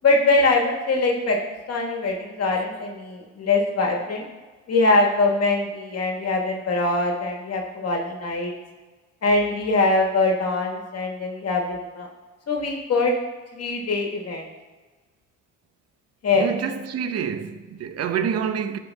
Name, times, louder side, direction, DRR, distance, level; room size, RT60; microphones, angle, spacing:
voice 1, 0.0-1.4 1.7-4.2 4.7-8.5 9.2-12.1 12.5-13.1 13.5-14.5 16.2-16.5, left 3 dB, 55° left, 1.4 m, -22 dB
voice 2, 16.3-18.8, right 7 dB, 55° right, 0.7 m, -27 dB
13.0 x 5.0 x 2.3 m
cardioid pair, 90°, 30 cm